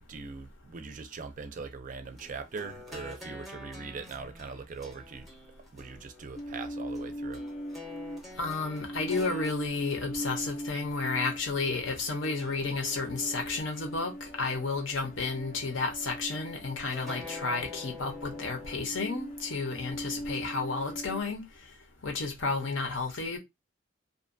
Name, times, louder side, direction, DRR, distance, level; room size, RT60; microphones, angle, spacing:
voice 1, 0.1-5.3 5.7-7.4, right 4 dB, 40° right, 0.4 m, -41 dB
sound 1, 2.2-11.6 12.2-13.8 14.3-15.4 16.9-18.9, left 3 dB, ahead, 0.6 m, -48 dB
sound 2, 6.4-21.2, equal, 40° left, 0.3 m, -41 dB
voice 2, 8.4-14.1 14.4-21.4 22.0-23.4, left 3 dB, 70° left, 0.8 m, -32 dB
2.5 x 2.2 x 2.5 m
head